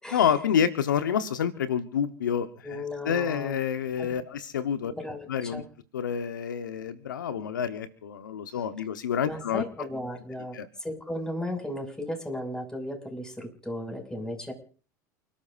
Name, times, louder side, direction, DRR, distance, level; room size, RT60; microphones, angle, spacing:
voice 1, 0.1-4.9 5.3-5.6 5.9-9.6 10.5-10.7, left 8 dB, 85° left, 9 dB, 1.2 m, -28 dB
voice 2, 2.6-3.6 4.0-4.1 4.8-5.6 9.2-14.5, left 1 dB, 5° left, 3 dB, 6.3 m, -35 dB
29.5 x 13.0 x 2.6 m, 0.41 s
hypercardioid pair, 80°, 10 cm